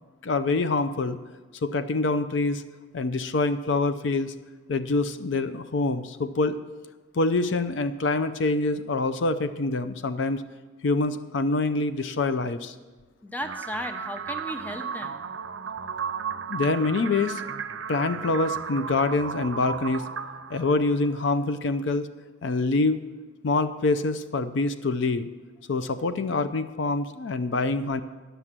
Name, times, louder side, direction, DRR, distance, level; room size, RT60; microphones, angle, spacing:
voice 1, 0.2-1.2 1.6-2.6 2.9-4.3 4.7-6.6 7.1-10.4 10.8-12.7 16.5-17.4 17.9-20.0 20.5-22.1 22.4-23.1 23.4-25.3 25.7-28.0, left 3 dB, 65° left, 11 dB, 0.5 m, -25 dB
voice 2, 13.2-15.3, equal, 10° left, 7 dB, 0.7 m, -35 dB
sound 1, 13.4-21.4, right 6 dB, 75° right, 0.6 m, -34 dB
9.7 x 6.9 x 7.4 m, 1.3 s
head